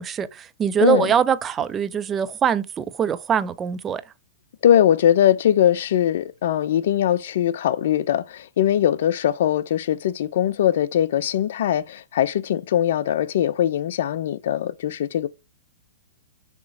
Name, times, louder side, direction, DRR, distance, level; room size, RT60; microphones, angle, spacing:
voice 1, 0.0-4.0, right 8 dB, 20° right, 0.4 m, -23 dB
voice 2, 0.8-1.1 4.6-15.3, left 10 dB, 65° left, 0.4 m, -21 dB
6.0 x 3.0 x 2.6 m
hypercardioid pair, 125°, 0 cm